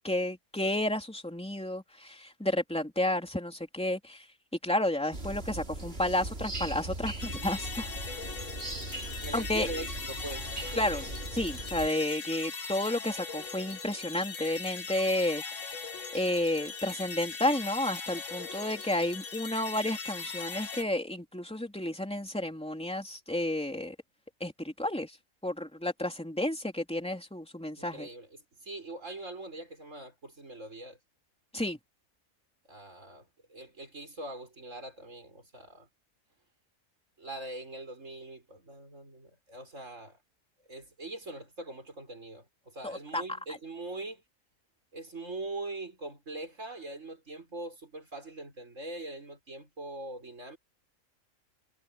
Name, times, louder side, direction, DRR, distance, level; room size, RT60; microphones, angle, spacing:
voice 1, 0.0-4.3 4.6-7.9 9.3-9.7 10.7-15.4 16.1-23.9 24.4-25.2 25.4-28.1 31.5-31.8 42.8-43.2, left 1 dB, 5° left, 3.2 m, -31 dB
sound 1, 5.1-11.9, right 2 dB, 45° right, 3.0 m, -39 dB
sound 2, 7.2-20.8, left 5 dB, 65° left, 1.8 m, -40 dB
voice 2, 9.2-10.5 27.8-28.3 28.6-31.0 32.7-35.9 37.2-40.2 40.7-44.2 44.9-50.6, right 2 dB, 65° right, 6.3 m, -42 dB
omnidirectional pair, 1.4 m